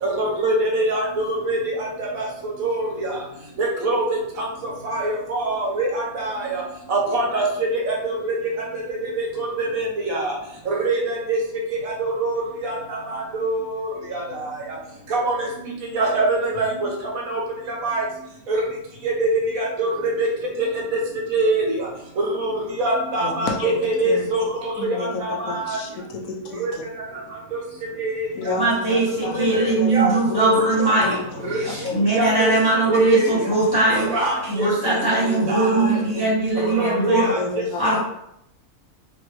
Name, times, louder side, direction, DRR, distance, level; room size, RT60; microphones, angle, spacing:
voice 1, 0.0-3.2 3.6-4.0 4.4-6.6 6.9-7.5 7.7-8.3 8.7-10.4 10.7-11.4 11.7-14.8 15.1-15.5 15.9-16.9 17.3-17.4 17.7-18.0 18.5-18.6 19.0-20.3 20.6-20.7 21.3-21.9 22.2-25.8 26.6-26.7 27.5-27.6 28.0-28.8 29.4-29.7 29.9-30.1 30.4-30.9 31.4-31.6 32.1-32.5 32.9-33.4 33.9-34.7 35.0-35.1 35.5-35.9 36.6-37.4, right 2 dB, 75° right, -1 dB, 1.3 m, -24 dB
voice 2, 23.2-24.3 24.8-26.8 28.3-30.7 31.0-32.2 33.1-33.2 34.8-36.3 36.6-38.0, left 3 dB, 75° left, 2 dB, 1.0 m, -31 dB
voice 3, 28.6-37.3 37.8-38.0, right 2 dB, 20° left, -7 dB, 0.9 m, -21 dB
3.4 x 3.0 x 3.0 m, 0.78 s
omnidirectional pair, 1.5 m